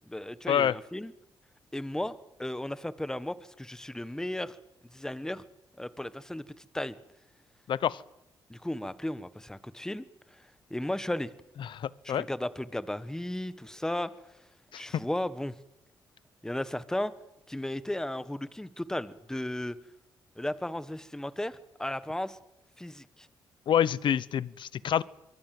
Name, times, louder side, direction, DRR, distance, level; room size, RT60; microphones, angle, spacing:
voice 1, 0.1-1.1 1.7-4.5 4.9-5.4 5.8-7.0 8.5-10.0 10.7-11.3 12.0-14.1 14.7-15.5 16.4-17.1 17.5-19.8 20.4-22.4 22.8-23.3, left 1 dB, 5° left, 14 dB, 1.3 m, -35 dB
voice 2, 7.7-8.0 11.6-12.3 14.7-14.8 23.7-25.0, left 9 dB, 65° left, 19 dB, 0.9 m, -27 dB
26.0 x 23.0 x 7.7 m, 0.86 s
cardioid pair, 110°, 9 cm